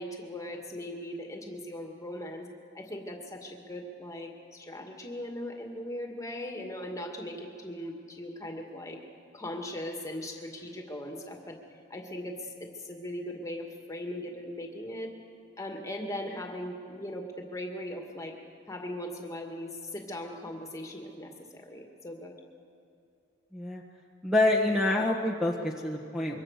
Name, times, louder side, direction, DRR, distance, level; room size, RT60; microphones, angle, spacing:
voice 1, 0.0-2.5 2.7-9.0 9.3-11.6 11.9-15.1 15.6-18.4 18.7-22.3, left 1 dB, 15° left, 2 dB, 2.0 m, -39 dB
voice 2, 24.2-26.4, left 2 dB, 5° right, -1 dB, 1.4 m, -27 dB
25.5 x 23.0 x 6.6 m, 2.6 s
head